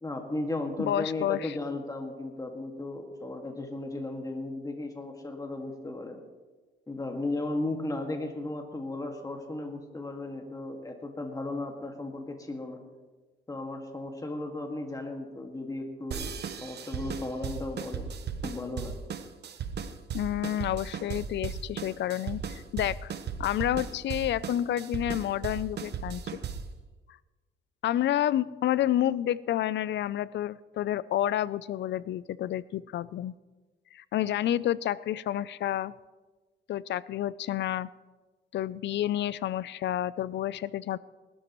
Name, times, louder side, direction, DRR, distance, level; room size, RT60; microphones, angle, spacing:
voice 1, 0.0-6.2 6.9-12.8 13.5-18.1 18.4-19.0, left 2 dB, 15° left, 3 dB, 1.9 m, -35 dB
voice 2, 0.8-1.5 20.1-23.1 23.4-26.2 27.8-33.3 33.9-35.9 36.7-37.9 38.5-41.0, left 12 dB, 65° left, 19 dB, 0.5 m, -29 dB
sound 1, 16.1-26.8, right 6 dB, 55° right, 1.0 m, -37 dB
19.5 x 12.5 x 3.1 m, 1.3 s
cardioid pair, 90°, 20 cm